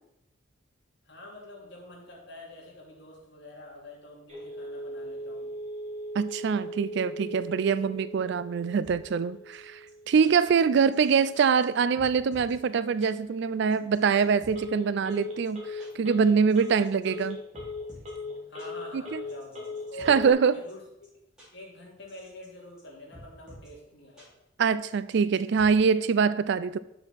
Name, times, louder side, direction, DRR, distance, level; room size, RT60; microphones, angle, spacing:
voice 1, 1.0-5.5 10.2-10.4 18.5-20.1 20.5-21.1 21.5-24.4, left 1 dB, 65° left, 2.8 m, -46 dB
Telephone, 4.3-20.3, left 1 dB, 35° right, 2.1 m, -40 dB
voice 2, 6.1-9.8 10.1-17.4 18.9-19.2 20.1-20.6 24.6-26.8, right 6 dB, 60° right, 0.4 m, -24 dB
sound 1, 8.8-8.9 9.5-9.6 9.9-10.0 10.2-10.3 10.9-11.3 11.6-11.7 12.0-12.5 13.0-13.1 13.7-14.5 15.1-15.2 15.4-15.5 15.8-15.9 16.5-17.2 17.5-18.1 18.6-18.7 19.3-20.1 20.7-20.8 21.0-21.1 21.4-21.5 22.1-22.5 22.8-22.9 23.1-23.7 24.2-24.3 24.9-25.7, equal, 5° right, 3.8 m, -50 dB
6.6 x 6.3 x 5.7 m
head